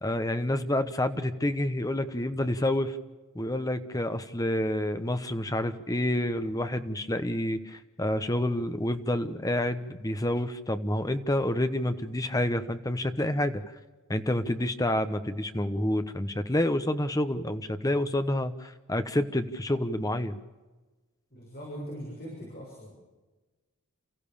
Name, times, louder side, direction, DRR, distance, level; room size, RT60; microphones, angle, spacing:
voice 1, 0.0-3.0 3.3-13.6 14.1-20.4, left 1 dB, 15° left, 10 dB, 1.1 m, -28 dB
voice 2, 21.3-22.9, equal, 45° left, -3 dB, 6.7 m, -40 dB
29.0 x 15.0 x 7.0 m, 1.2 s
head